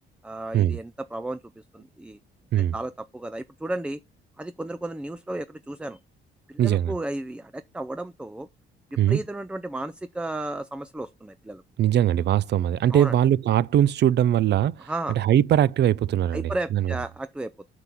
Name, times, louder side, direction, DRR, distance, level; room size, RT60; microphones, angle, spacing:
voice 1, 0.2-2.2 2.6-4.0 4.4-6.0 6.5-8.5 9.1-11.6 12.9-13.1 14.9-15.2 16.3-17.7, right 1 dB, 5° right, 0.4 m, -33 dB
voice 2, 6.6-6.9 9.0-9.2 11.8-16.9, right 11 dB, 60° right, 0.5 m, -21 dB
6.0 x 5.9 x 6.8 m
cardioid pair, 90°, 20 cm